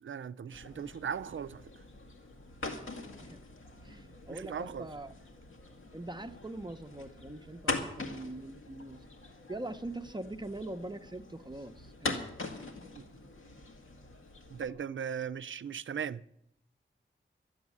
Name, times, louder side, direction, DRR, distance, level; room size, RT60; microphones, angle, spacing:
voice 1, 0.0-1.6 4.3-4.9 12.9-13.0 14.5-16.2, right 7 dB, 75° right, 0.5 m, -38 dB
sound 1, 0.5-14.7, left 3 dB, 85° left, 2.0 m, -43 dB
voice 2, 2.7-3.4 3.8-5.1 5.9-9.0 9.5-12.3, right 2 dB, 20° right, 0.7 m, -43 dB
12.0 x 8.1 x 9.6 m
wide cardioid pair, 105°, 20 cm